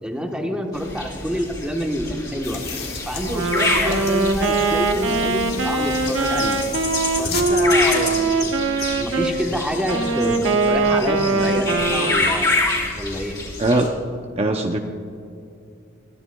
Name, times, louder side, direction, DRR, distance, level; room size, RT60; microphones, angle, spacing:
voice 1, 0.0-2.6 3.0-6.6 7.2-12.5 12.9-13.4, equal, 5° right, 2 dB, 1.1 m, -27 dB
sound 1, 0.7-13.9, left 2 dB, 20° left, 3.1 m, -27 dB
sound 2, 2.4-7.4, left 4 dB, 55° left, 1.7 m, -34 dB
Wind instrument woodwind instrument, 3.2-9.3 9.8-12.5, right 3 dB, 85° right, 1.1 m, -21 dB
voice 2, 13.6-13.9 14.4-14.8, right 2 dB, 30° right, 3 dB, 0.6 m, -20 dB
22.0 x 14.0 x 2.3 m, 2.5 s
head